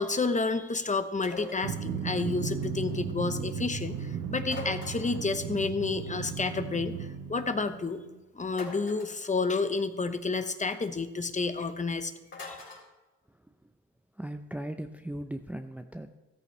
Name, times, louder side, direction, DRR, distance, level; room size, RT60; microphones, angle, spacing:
voice 1, 0.0-8.0 8.3-12.1 12.4-12.6, left 4 dB, 25° left, 9 dB, 1.0 m, -30 dB
sound 1, 1.2-1.7 4.4-5.3 8.5-9.2 12.3-12.9, left 2 dB, 40° left, 4.1 m, -42 dB
Drum, 1.6-8.1, right 7 dB, 90° right, 1.1 m, -35 dB
voice 2, 13.3-13.7 14.1-16.1, right 1 dB, 5° right, 6 dB, 0.7 m, -39 dB
14.0 x 14.0 x 3.3 m, 1.1 s
cardioid pair, 90°, 30 cm